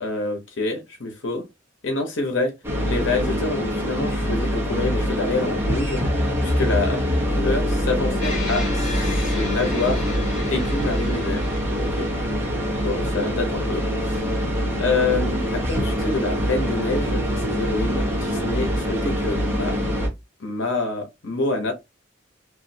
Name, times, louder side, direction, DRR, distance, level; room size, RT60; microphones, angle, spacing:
voice 1, 0.0-1.4 1.8-2.5 2.9-6.0 6.4-7.0 7.4-10.0 10.5-11.4 11.8-12.1 12.8-14.2 14.8-19.7 20.4-21.7, left 3 dB, 75° left, 0.9 m, -26 dB
sound 1, 2.6-20.1, equal, 10° right, 0.9 m, -24 dB
sound 2, 8.2-12.6, left 2 dB, 40° left, 2.0 m, -35 dB
3.1 x 2.5 x 2.6 m
head